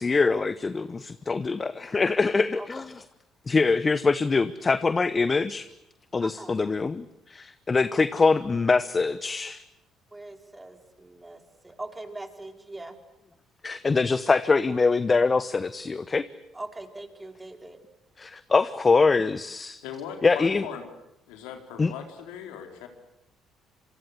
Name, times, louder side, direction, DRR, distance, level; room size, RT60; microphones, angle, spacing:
voice 1, 0.0-2.9 3.5-5.7 6.1-9.6 13.6-16.2 18.2-19.8 20.2-20.6 21.8-21.9, left 4 dB, 30° left, 15 dB, 1.0 m, -24 dB
voice 2, 6.2-6.5 10.1-12.9 16.5-17.8, right 2 dB, 15° right, 6 dB, 4.5 m, -41 dB
voice 3, 19.8-20.8 21.3-22.9, left 8 dB, 80° left, 5 dB, 4.1 m, -39 dB
27.0 x 23.5 x 8.3 m, 0.86 s
hypercardioid pair, 60°, 0 cm